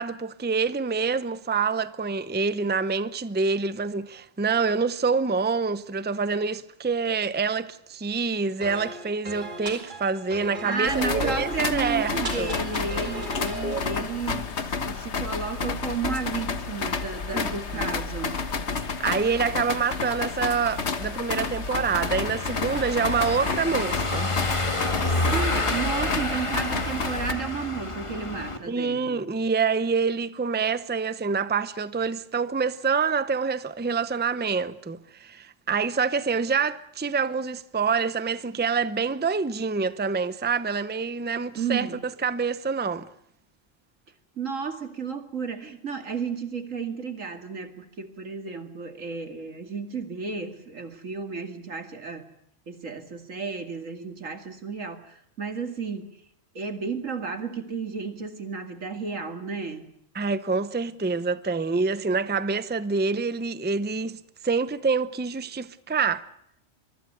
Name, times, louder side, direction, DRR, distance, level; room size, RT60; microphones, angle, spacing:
voice 1, 0.0-12.6 17.3-17.9 18.7-24.3 28.7-41.9 42.2-43.1 60.1-66.3, right 5 dB, 10° right, 0.6 m, -26 dB
sound 1, 8.6-13.8, right 2 dB, 40° right, 2.2 m, -35 dB
voice 2, 10.6-18.4 25.3-29.2 41.6-42.0 44.4-52.3 52.7-56.2 56.5-59.9, right 5 dB, 90° right, 2.7 m, -32 dB
sound 2, 10.8-27.3, left 4 dB, 60° left, 1.7 m, -30 dB
Car passing by / Engine, 21.9-28.6, left 2 dB, 25° left, 1.9 m, -29 dB
24.5 x 23.0 x 6.7 m
omnidirectional pair, 1.3 m